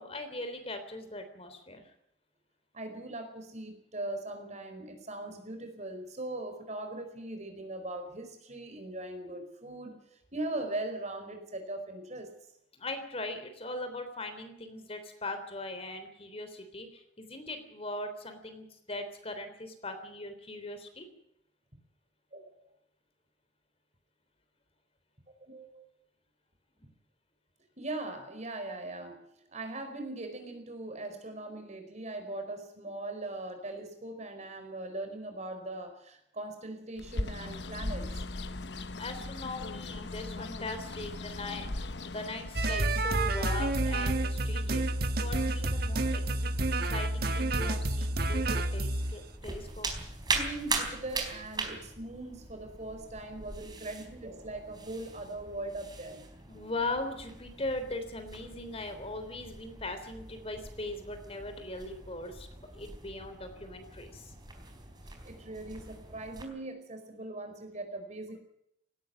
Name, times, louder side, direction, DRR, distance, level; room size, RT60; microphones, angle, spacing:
voice 1, 0.0-1.9 12.8-21.1 39.0-41.7 42.0-44.9 45.2-46.5 46.9-49.9 56.5-64.3, left 2 dB, 35° left, 8 dB, 3.5 m, -40 dB
voice 2, 2.7-10.0 10.3-12.3 21.7-21.8 22.3-22.5 25.4-25.8 26.8-26.9 27.8-38.2 50.3-56.3 65.0-68.4, right 2 dB, 40° right, 7 dB, 4.9 m, -40 dB
Bird, 37.0-42.9, left 2 dB, 75° left, 1.1 m, -38 dB
sound 1, 42.5-49.1, right 2 dB, 60° right, 1.5 m, -29 dB
sound 2, 47.6-66.5, right 3 dB, 25° right, 4.2 m, -41 dB
18.5 x 16.5 x 8.9 m, 0.75 s
head